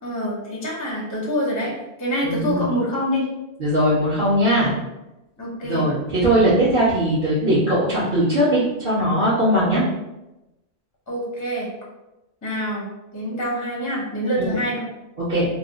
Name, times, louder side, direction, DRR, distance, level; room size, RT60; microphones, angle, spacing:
voice 1, 0.0-1.7 2.0-3.3 5.4-5.9 11.1-11.7 12.4-12.9 13.1-14.8, equal, 20° left, -4 dB, 0.7 m, -25 dB
voice 2, 2.2-2.7 3.6-4.7 5.6-9.8 14.4-14.5 15.2-15.5, right 1 dB, 45° right, -13 dB, 1.2 m, -20 dB
3.0 x 2.0 x 3.5 m, 0.96 s
omnidirectional pair, 1.2 m